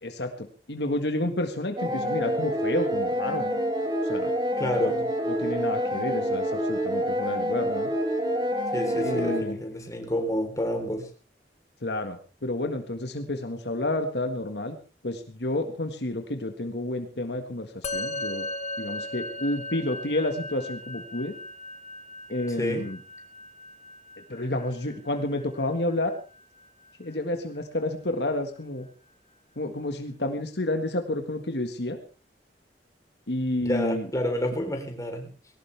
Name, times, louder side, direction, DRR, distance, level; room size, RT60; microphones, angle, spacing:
voice 1, 0.0-3.5 4.0-4.3 4.8-4.9 5.4-7.9 8.9-9.6 11.8-14.8 15.0-18.5 18.8-21.4 22.3-23.0 24.3-26.1 27.0-28.9 29.6-32.0 33.3-34.1, left 1 dB, 70° left, 6 dB, 1.8 m, -30 dB
sound 1, 1.8-9.4, equal, 25° right, 3.3 m, -27 dB
voice 2, 4.6-5.0 8.7-11.1 22.5-22.9 33.6-35.3, equal, 20° left, 3 dB, 3.9 m, -29 dB
Musical instrument, 17.8-27.4, left 2 dB, 40° left, 1.4 m, -38 dB
19.5 x 17.5 x 3.5 m, 0.36 s
head